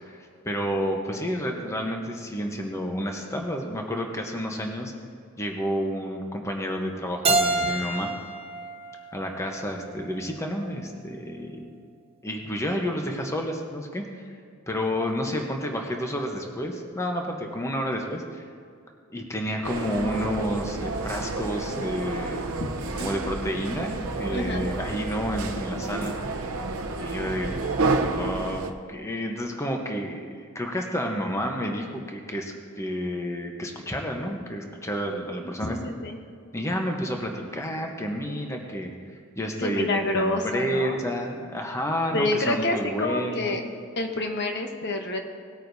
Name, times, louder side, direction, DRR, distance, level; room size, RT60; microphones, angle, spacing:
voice 1, 0.0-4.9 5.4-8.1 9.1-11.7 12.2-14.3 14.7-18.5 19.1-22.4 23.0-26.2 27.0-27.5 28.1-35.8 36.5-43.5, equal, 15° left, 2 dB, 0.9 m, -30 dB
Keyboard (musical), 7.2-10.1, right 2 dB, 30° right, 1.0 m, -28 dB
sound 1, 19.6-28.7, right 3 dB, 90° right, 0.7 m, -30 dB
voice 2, 24.3-24.7 35.4-36.2 39.6-41.0 42.1-43.6 44.0-45.2, left 2 dB, 55° left, 4 dB, 1.0 m, -28 dB
19.0 x 9.2 x 2.7 m, 2.2 s
head